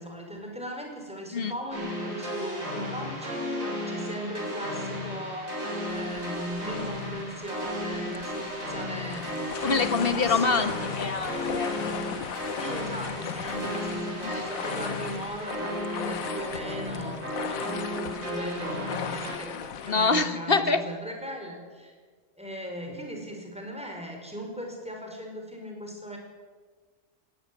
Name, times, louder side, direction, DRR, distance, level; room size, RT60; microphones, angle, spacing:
voice 1, 0.0-9.8 10.1-10.8 12.6-21.9 22.4-26.2, equal, 5° right, 1 dB, 5.1 m, -38 dB
sound 1, 1.7-19.3, equal, 80° right, 7.8 m, -34 dB
sound 2, 5.9-20.3, left 9 dB, 90° left, 1.3 m, -38 dB
voice 2, 9.6-11.7 14.2-14.4 15.0-15.1 19.8-20.8, left 4 dB, 45° left, 10 dB, 1.4 m, -25 dB
18.5 x 16.5 x 9.9 m, 1.5 s
omnidirectional pair, 1.4 m